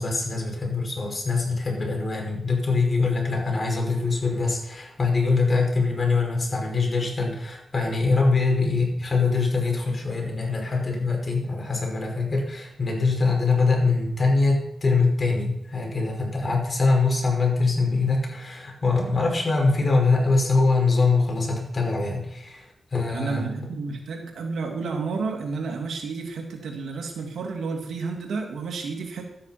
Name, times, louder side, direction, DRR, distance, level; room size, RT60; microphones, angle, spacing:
voice 1, 0.0-23.4, left 3 dB, 40° left, 0 dB, 5.3 m, -23 dB
voice 2, 23.1-29.2, right 4 dB, 90° right, 3 dB, 2.5 m, -31 dB
12.5 x 9.5 x 5.9 m, 0.77 s
cardioid pair, 75°, 0 cm